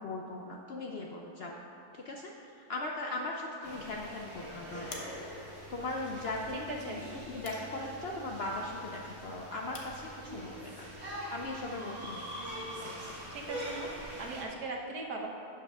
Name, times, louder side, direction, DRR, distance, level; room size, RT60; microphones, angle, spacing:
voice 1, 0.0-1.6 1.9-5.2 5.7-7.0 7.3-10.9 11.3-12.3, left 2 dB, 70° left, 0 dB, 0.6 m, -39 dB
sound 1, 2.8-12.0, left 4 dB, 85° left, 1.4 m, -54 dB
sound 2, 3.6-14.4, equal, 45° right, 1.7 m, -43 dB
voice 2, 6.7-7.0 13.3-15.3, right 2 dB, 85° right, 0 dB, 1.5 m, -39 dB
11.5 x 8.5 x 2.4 m, 2.6 s
omnidirectional pair, 1.6 m